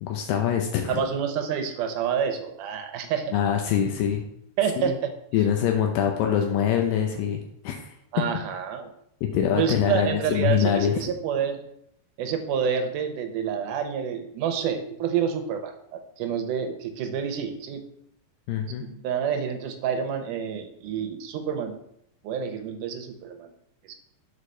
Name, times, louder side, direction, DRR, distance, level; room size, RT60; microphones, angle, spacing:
voice 1, 0.0-1.0 3.3-4.2 4.8-5.0 5.3-7.8 9.3-11.0 18.5-18.9, left 9 dB, 80° left, 3 dB, 2.3 m, -24 dB
voice 2, 0.9-3.4 4.6-5.1 8.1-8.9 9.6-11.6 12.2-17.8 18.8-21.7 22.2-23.5 23.8-24.0, right 7 dB, 75° right, 6 dB, 2.1 m, -28 dB
6.3 x 4.9 x 5.5 m, 0.74 s
omnidirectional pair, 4.1 m